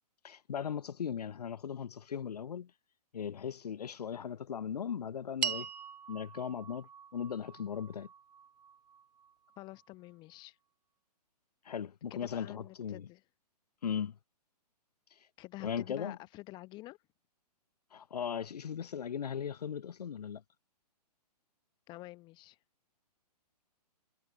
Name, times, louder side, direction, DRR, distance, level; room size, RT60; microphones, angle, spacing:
voice 1, 0.2-2.7 3.1-5.7 6.1-8.1 11.7-13.1 13.8-14.2 15.6-16.2 17.9-20.4, left 8 dB, 70° left, 0.6 m, -38 dB
sound 1, 5.4-9.9, right 8 dB, 80° right, 0.4 m, -42 dB
voice 2, 9.6-10.6 12.1-13.2 15.4-17.0 21.9-22.6, left 19 dB, 20° left, 0.8 m, -48 dB
figure-of-eight pair, 125°, 21 cm